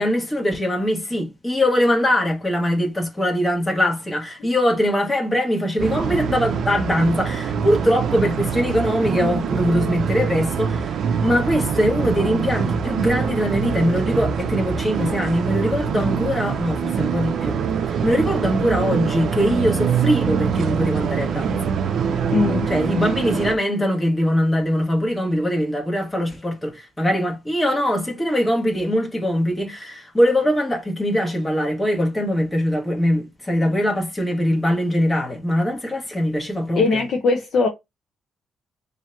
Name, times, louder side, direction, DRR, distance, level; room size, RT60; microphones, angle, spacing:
voice 1, 0.0-10.9 11.2-17.6 18.0-21.7 22.7-36.8, equal, 10° left, 1.2 m, -22 dB
sound 1, 5.8-23.6, right 7 dB, 65° right, 0.5 m, -24 dB
voice 2, 22.3-22.7 36.8-37.7, left 4 dB, 60° left, 0.7 m, -20 dB
2.9 x 2.7 x 4.3 m
cardioid pair, 150°, 0 cm